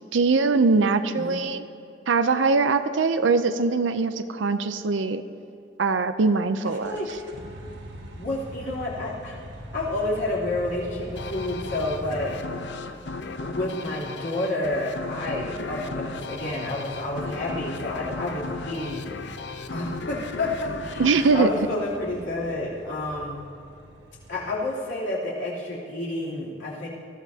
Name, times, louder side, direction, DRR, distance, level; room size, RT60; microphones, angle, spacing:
voice 1, 0.1-1.7 2.1-5.2 5.8-7.0 21.0-21.5, right 4 dB, 85° right, 10 dB, 0.6 m, -22 dB
sound 1, 6.6-13.0 14.8-24.9, equal, 60° right, 1.5 m, -43 dB
voice 2, 6.8-7.3 8.1-9.4 9.7-12.3 13.4-19.1 19.7-23.4 24.3-26.9, left 1 dB, 85° left, -7 dB, 3.2 m, -30 dB
sound 2, 11.2-22.4, left 3 dB, 70° left, 0.7 m, -36 dB
19.5 x 14.0 x 2.8 m, 2.6 s
head